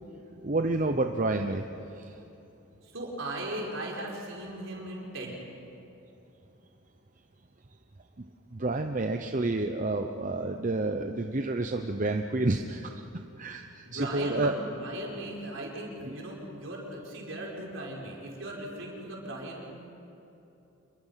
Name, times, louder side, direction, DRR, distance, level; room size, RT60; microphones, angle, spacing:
voice 1, 0.4-1.7 2.0-2.1 8.5-13.0 13.4-14.6, right 2 dB, 35° right, 5 dB, 0.7 m, -29 dB
voice 2, 2.8-5.4 13.8-19.7, right 1 dB, 60° right, -2 dB, 5.0 m, -38 dB
27.5 x 22.5 x 5.8 m, 3.0 s
head